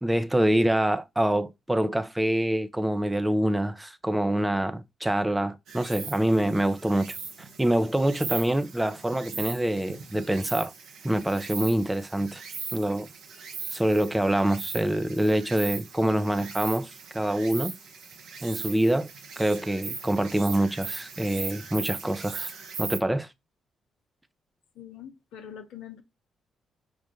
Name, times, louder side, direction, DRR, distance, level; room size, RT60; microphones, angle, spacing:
voice 1, 0.0-7.2 7.6-10.7 11.0-12.4 12.7-13.1 13.7-17.7 18.4-19.1 19.4-22.5 22.8-23.3, right 1 dB, 10° right, 0.7 m, -25 dB
Insect, 5.7-23.0, right 5 dB, 65° right, 0.9 m, -39 dB
voice 2, 24.7-26.0, left 9 dB, 70° left, 0.9 m, -43 dB
5.4 x 2.4 x 3.6 m
hypercardioid pair, 40°, 0 cm